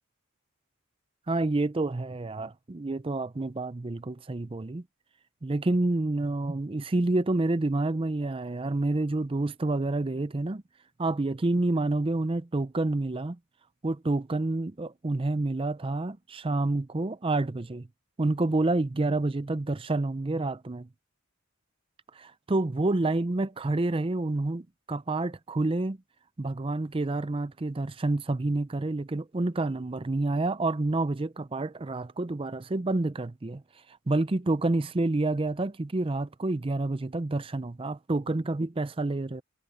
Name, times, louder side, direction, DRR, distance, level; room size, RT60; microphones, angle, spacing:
voice 1, 1.3-4.8 5.4-10.6 11.0-13.4 13.8-17.9 18.2-20.9 22.2-26.0 26.4-33.6 34.1-39.4, right 2 dB, 25° right, 0.5 m, -28 dB
head